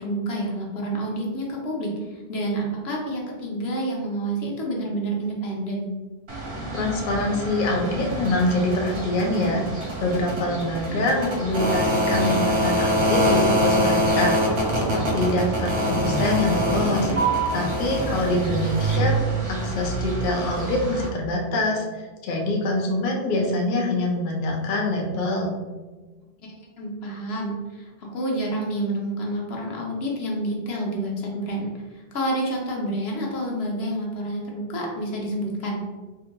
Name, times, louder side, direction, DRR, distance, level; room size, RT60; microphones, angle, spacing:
voice 1, 0.0-5.9 10.9-11.0 26.4-35.8, right 1 dB, 80° left, -2 dB, 1.0 m, -29 dB
sound 1, 6.3-21.1, right 1 dB, 65° right, 1.0 m, -25 dB
voice 2, 6.7-9.6 10.0-17.1 17.5-19.2 19.5-25.5, left 1 dB, 60° left, 0 dB, 0.6 m, -25 dB
3.7 x 2.7 x 2.2 m, 1.2 s
omnidirectional pair, 1.1 m